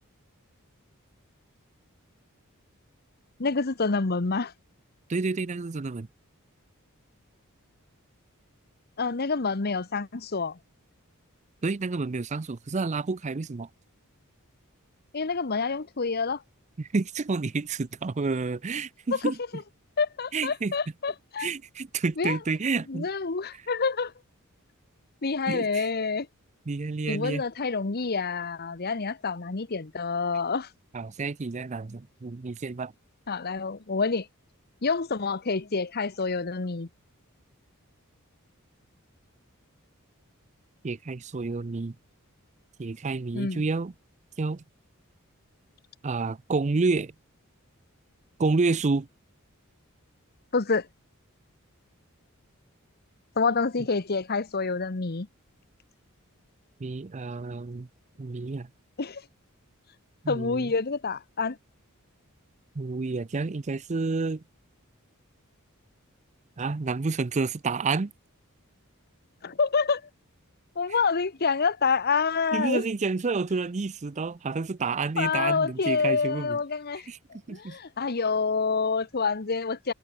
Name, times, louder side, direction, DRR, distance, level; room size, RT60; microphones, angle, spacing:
voice 1, 3.4-4.5 9.0-10.6 15.1-16.4 19.1-19.3 20.0-21.5 22.2-22.4 22.9-24.1 25.2-26.3 27.1-30.7 33.3-34.3 34.8-36.9 43.3-43.6 50.5-50.9 53.4-55.3 59.0-59.2 60.3-61.6 69.4-70.0 70.8-72.8 75.2-77.1 77.5-79.9, left 4 dB, 45° left, 1.0 m, -27 dB
voice 2, 5.1-6.1 11.6-13.7 16.8-19.4 20.3-20.7 21.4-23.1 25.5-25.9 26.7-27.4 30.9-32.9 40.8-42.0 42.8-43.9 44.4-44.6 46.0-47.1 48.4-49.1 56.8-57.9 58.2-58.7 60.2-60.7 62.7-64.4 66.6-68.1 72.5-76.6 77.1-77.2 77.5-77.8, right 4 dB, 35° right, 0.5 m, -29 dB
head